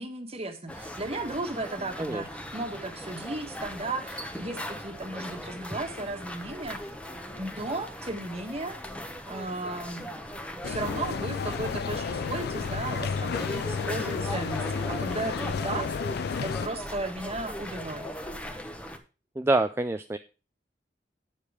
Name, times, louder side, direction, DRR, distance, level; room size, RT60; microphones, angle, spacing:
voice 1, 0.0-6.8 7.4-8.8 9.3-10.2 10.6-18.1, right 2 dB, 35° right, 6 dB, 1.5 m, -35 dB
sound 1, 0.7-19.0, equal, 5° left, 1.0 m, -39 dB
sound 2, 10.6-16.7, left 6 dB, 60° left, 0.3 m, -32 dB
voice 2, 19.4-20.2, right 2 dB, 15° right, 8 dB, 0.4 m, -26 dB
8.6 x 7.3 x 4.9 m, 0.33 s
head